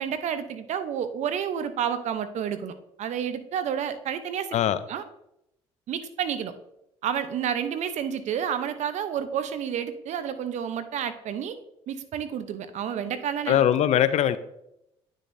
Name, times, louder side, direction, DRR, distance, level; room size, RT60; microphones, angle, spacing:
voice 1, 0.0-4.5 4.9-5.0 5.9-6.5 7.0-11.6 11.9-13.6, right 8 dB, 60° right, 11 dB, 0.8 m, -30 dB
voice 2, 13.5-14.4, left 10 dB, 55° left, 14 dB, 0.5 m, -21 dB
9.7 x 6.3 x 2.7 m, 0.82 s
supercardioid pair, 70°, 13 cm